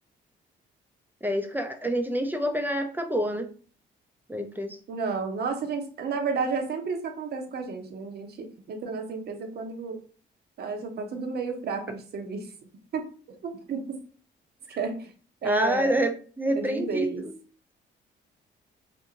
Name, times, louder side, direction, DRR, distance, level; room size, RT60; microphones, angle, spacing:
voice 1, 1.2-3.5 4.3-4.8 15.4-17.3, equal, 10° right, 6 dB, 0.4 m, -27 dB
voice 2, 4.9-10.0 10.6-12.5 12.9-13.0 13.4-13.8 14.8-15.1 15.4-16.0 16.6-17.2, right 4 dB, 55° right, 4 dB, 0.7 m, -31 dB
2.5 x 2.5 x 2.8 m, 0.41 s
cardioid pair, 90°, 20 cm